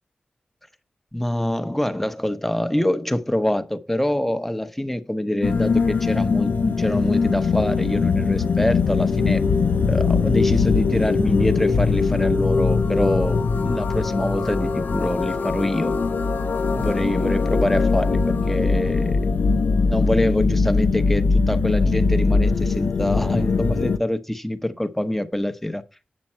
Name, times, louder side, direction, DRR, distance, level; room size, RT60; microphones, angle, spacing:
voice 1, 1.1-9.4 9.9-15.9 16.7-19.2 19.9-25.8, left 1 dB, 5° left, 0.9 m, -25 dB
sound 1, 5.4-24.0, left 4 dB, 85° left, 0.7 m, -21 dB
8.7 x 6.8 x 4.4 m
wide cardioid pair, 70°, 3 cm